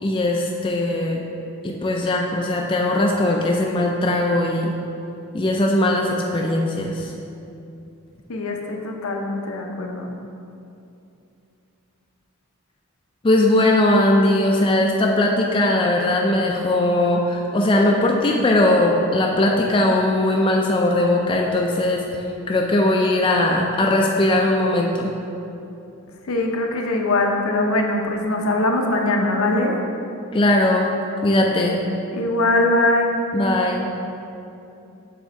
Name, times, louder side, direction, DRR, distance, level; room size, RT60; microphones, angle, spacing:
voice 1, 0.0-1.2 1.6-4.7 5.3-7.1 13.2-22.0 22.5-25.1 30.3-30.9 31.2-31.8 33.3-33.9, left 1 dB, 25° left, 0 dB, 0.3 m, -19 dB
voice 2, 8.3-10.1 26.3-29.8 32.1-33.2, left 2 dB, 70° left, 2 dB, 0.7 m, -21 dB
7.1 x 3.6 x 4.4 m, 2.7 s
head